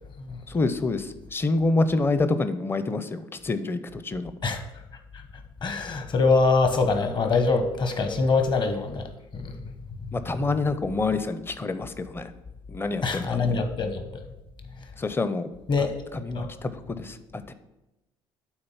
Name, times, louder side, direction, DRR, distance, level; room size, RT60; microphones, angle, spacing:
voice 1, 0.5-4.3 10.1-12.3 12.7-13.4 15.0-15.5 15.8-15.9 16.1-17.5, left 3 dB, 20° left, 12 dB, 0.6 m, -27 dB
voice 2, 5.6-9.5 13.0-14.2 15.7-15.9 16.3-16.5, left 4 dB, 40° left, 7 dB, 1.1 m, -24 dB
8.8 x 4.0 x 5.6 m, 0.97 s
hypercardioid pair, 65°, 12 cm